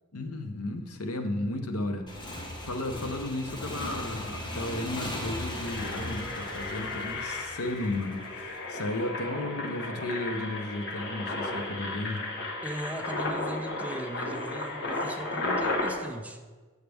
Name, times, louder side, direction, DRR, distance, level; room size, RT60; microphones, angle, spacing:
voice 1, 0.1-2.3 2.6-12.3, left 2 dB, 85° left, 5 dB, 0.8 m, -34 dB
Motorcycle / Engine, 2.1-8.4, left 1 dB, 20° left, 0.9 m, -38 dB
Engine, 4.7-4.8 5.2-15.9, left 2 dB, 55° left, 1.1 m, -34 dB
voice 2, 12.6-16.4, equal, 5° right, 5 dB, 0.4 m, -38 dB
8.0 x 6.6 x 3.4 m, 1.3 s
head